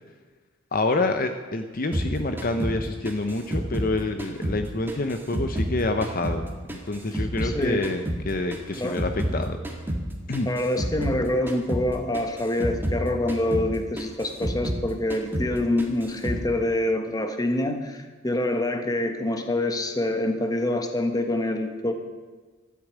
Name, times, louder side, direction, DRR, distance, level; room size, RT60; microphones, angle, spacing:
voice 1, 0.7-6.4 6.7-9.6 10.3-10.5, left 2 dB, 45° left, 7 dB, 0.8 m, -27 dB
sound 1, 1.9-4.6 4.9-7.6 7.8-11.2 11.5-11.9 12.1-14.8 15.1-15.5 15.8-16.4, right 1 dB, 10° right, 1.7 m, -30 dB
voice 2, 7.4-7.8 8.8-9.0 10.5-21.9, left 1 dB, 20° left, 6 dB, 1.3 m, -26 dB
13.5 x 8.4 x 8.7 m, 1.4 s
head